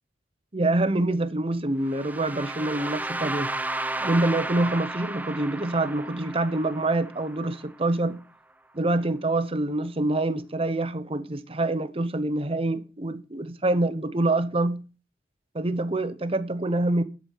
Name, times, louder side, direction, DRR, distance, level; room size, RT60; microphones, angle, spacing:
voice 1, 0.5-3.5 4.0-8.2 8.7-14.8 15.5-17.0, right 2 dB, 30° right, 0.9 m, -26 dB
sound 1, 1.9-7.8, right 2 dB, 10° right, 0.6 m, -33 dB
11.0 x 8.3 x 5.6 m
head